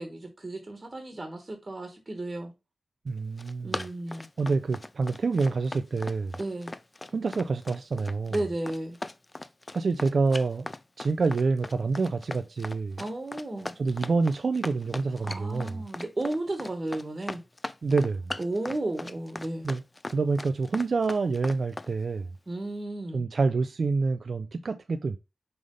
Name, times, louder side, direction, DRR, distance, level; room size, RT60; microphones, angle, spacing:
voice 1, 0.0-2.5 3.6-4.3 6.4-6.7 8.3-9.0 13.0-13.7 15.2-17.4 18.4-19.7 22.5-23.2, right 2 dB, 30° right, 1.3 m, -33 dB
voice 2, 3.1-3.9 4.4-6.3 7.1-8.4 9.7-10.7 11.0-13.0 13.8-15.9 17.8-18.3 19.6-19.8 20.1-22.3 23.1-25.2, right 4 dB, 55° right, 0.4 m, -27 dB
Run, 3.2-21.9, left 2 dB, 25° left, 0.3 m, -39 dB
5.5 x 3.3 x 5.2 m
wide cardioid pair, 90°, 0 cm